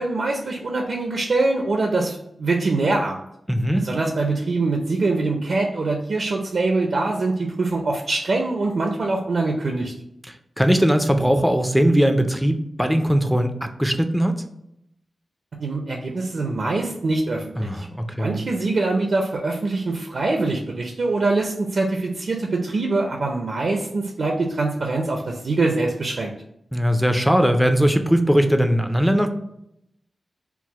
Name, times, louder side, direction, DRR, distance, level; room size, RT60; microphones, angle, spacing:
voice 1, 0.0-3.2 3.7-9.9 15.6-17.9 18.2-26.3, right 3 dB, 60° right, 1 dB, 0.5 m, -23 dB
voice 2, 3.5-3.8 10.2-14.3 17.6-18.4 26.7-29.3, equal, ahead, 6 dB, 0.4 m, -20 dB
4.6 x 2.0 x 4.1 m, 0.79 s
wide cardioid pair, 130°, 0 cm